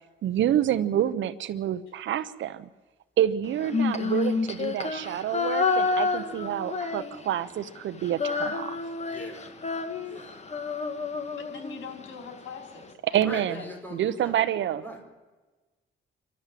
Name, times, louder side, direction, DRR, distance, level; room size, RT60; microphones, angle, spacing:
voice 1, 0.2-2.7 3.2-8.8 13.1-13.6 13.9-14.8, right 11 dB, 70° right, 13 dB, 0.9 m, -27 dB
Female singing, 3.6-7.5 7.8-12.1, left 4 dB, 35° left, 1.9 m, -29 dB
voice 2, 9.1-9.5 10.0-10.3 13.2-13.4 13.7-14.3 14.8-15.0, right 1 dB, 10° left, 2 dB, 5.3 m, -40 dB
voice 3, 11.4-13.7 14.2-14.3, left 5 dB, 75° left, 4 dB, 4.4 m, -43 dB
28.5 x 12.5 x 7.6 m, 1.2 s
cardioid pair, 90°, 20 cm